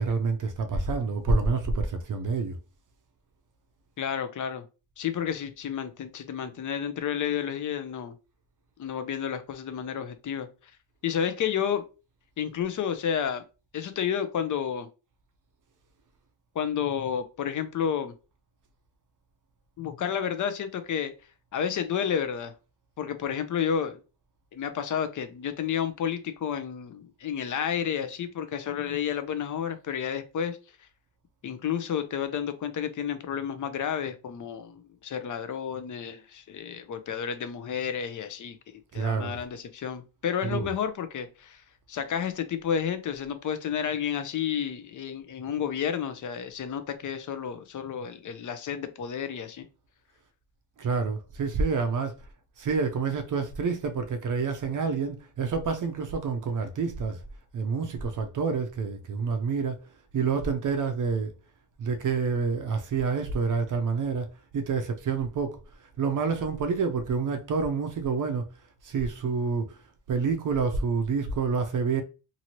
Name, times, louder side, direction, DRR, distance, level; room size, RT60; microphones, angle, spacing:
voice 1, 0.0-2.5 38.9-39.4 40.4-40.7 50.8-52.1 52.6-57.2 57.5-59.8 60.1-61.3 61.8-64.3 64.5-65.6 66.0-68.4 68.8-69.7 70.1-72.0, right 5 dB, 40° right, 0.5 m, -28 dB
voice 2, 4.0-4.6 5.0-8.1 8.8-10.5 11.0-11.8 12.4-13.4 13.7-14.9 16.6-18.1 19.8-21.1 21.5-22.5 23.0-24.0 24.5-30.6 31.4-38.6 38.9-41.6 41.9-49.7, left 8 dB, 40° left, 0.5 m, -31 dB
2.8 x 2.6 x 2.9 m
cardioid pair, 120°, 48 cm